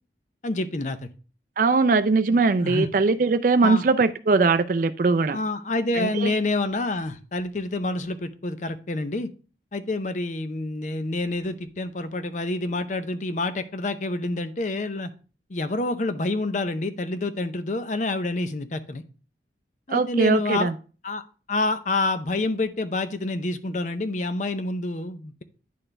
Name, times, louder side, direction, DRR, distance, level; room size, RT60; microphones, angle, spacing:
voice 1, 0.4-1.0 2.3-2.9 3.6-3.9 5.3-9.3 9.7-15.1 15.5-19.0 19.9-20.7 21.0-25.4, left 2 dB, 40° left, 10 dB, 0.6 m, -28 dB
voice 2, 1.6-5.4 6.0-6.3 19.9-20.7, right 4 dB, 45° right, 11 dB, 0.4 m, -21 dB
10.0 x 4.3 x 3.3 m, 0.37 s
head